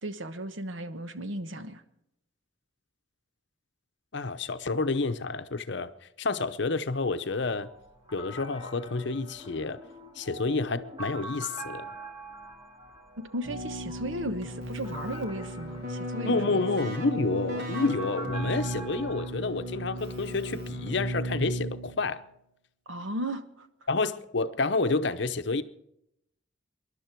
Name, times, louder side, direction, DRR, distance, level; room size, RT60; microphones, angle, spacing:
voice 1, 0.0-1.8 13.2-16.7 22.9-23.7, right 1 dB, 75° right, 1.2 m, -36 dB
voice 2, 4.1-5.9 6.2-7.7 8.1-9.8 10.2-11.9 16.2-22.2 23.9-25.6, left 3 dB, 60° left, 0.8 m, -29 dB
sound 1, 7.3-19.3, right 1 dB, 25° right, 2.2 m, -44 dB
Keyboard (musical), 13.4-22.2, equal, 55° right, 2.6 m, -35 dB
27.5 x 11.5 x 4.6 m
head